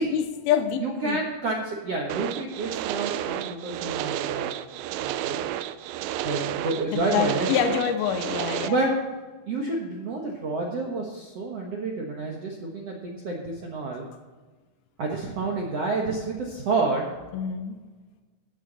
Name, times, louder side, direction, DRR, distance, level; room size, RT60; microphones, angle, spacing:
voice 1, 0.0-1.2 6.9-8.8 17.3-17.8, left 8 dB, 75° left, 6 dB, 2.5 m, -26 dB
voice 2, 0.8-4.5 5.0-5.4 6.2-7.5 8.6-8.9 9.5-14.1 15.0-17.1, right 3 dB, 65° right, -1 dB, 1.5 m, -29 dB
sound 1, 2.1-8.7, right 12 dB, 90° right, 2.1 m, -31 dB
16.0 x 9.0 x 4.1 m, 1.3 s
omnidirectional pair, 4.9 m